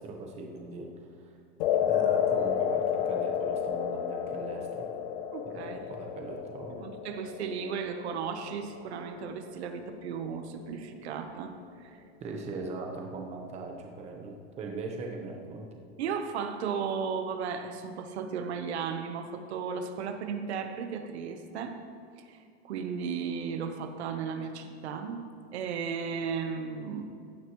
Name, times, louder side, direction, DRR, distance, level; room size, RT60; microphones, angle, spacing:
voice 1, 0.0-1.3 1.8-4.9 5.6-6.8 12.2-15.7, right 3 dB, 20° right, 1 dB, 1.1 m, -40 dB
sound 1, 1.6-9.9, left 8 dB, 50° left, 0.5 m, -31 dB
voice 2, 5.3-5.8 6.8-11.6 11.8-12.0 16.0-21.8 22.2-25.2 25.5-27.1, right 6 dB, 80° right, 7 dB, 1.1 m, -35 dB
16.0 x 10.0 x 3.1 m, 2.3 s
supercardioid pair, 165°, 32 cm